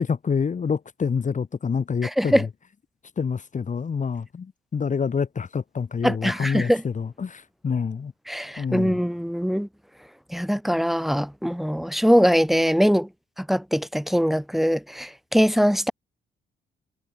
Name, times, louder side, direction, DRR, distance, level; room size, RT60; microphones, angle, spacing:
voice 1, 0.0-2.5 3.2-8.1 8.6-9.0, left 6 dB, 40° left, 2.5 m, -27 dB
voice 2, 2.0-2.5 6.0-6.8 8.3-9.7 10.3-13.1 13.4-15.9, equal, ahead, 3.4 m, -22 dB
cardioid pair, 90°, 20 cm